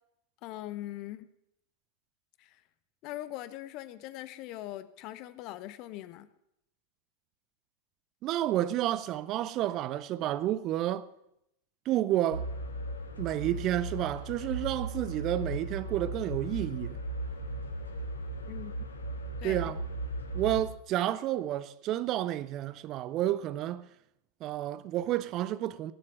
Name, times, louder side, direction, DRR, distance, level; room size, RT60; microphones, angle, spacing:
voice 1, 0.4-1.3 2.4-2.6 3.0-6.3 18.5-18.7 19.4-19.6, left 14 dB, 40° left, 0.9 m, -41 dB
voice 2, 8.2-11.1 11.9-12.5 13.2-17.0 19.4-19.8 20.3-23.9 24.4-25.9, right 13 dB, 35° right, 0.6 m, -30 dB
sound 1, 12.3-20.7, right 1 dB, 75° left, 1.7 m, -37 dB
17.0 x 7.6 x 8.8 m
figure-of-eight pair, 90°, 0 cm